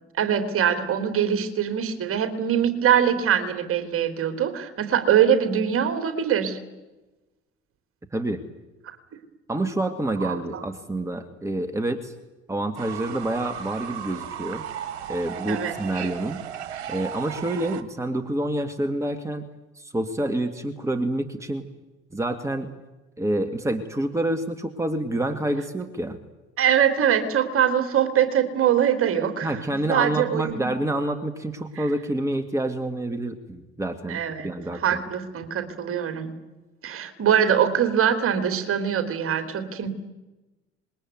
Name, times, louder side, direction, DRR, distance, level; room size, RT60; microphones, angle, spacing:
voice 1, 0.2-6.6 10.2-10.6 15.5-15.7 26.6-29.6 29.9-30.7 31.8-31.9 34.1-36.3 36.8-39.9, right 9 dB, 40° right, 9 dB, 3.3 m, -23 dB
voice 2, 8.1-8.4 9.5-12.1 12.5-14.6 15.1-16.4 16.9-19.4 19.8-21.6 22.1-22.7 23.2-26.2 29.4-35.0, right 1 dB, 10° right, 8 dB, 2.2 m, -28 dB
Fowl / Bird, 12.8-17.8, right 9 dB, 70° right, 1.7 m, -35 dB
26.5 x 21.0 x 9.4 m, 1.1 s
figure-of-eight pair, 55°, 34 cm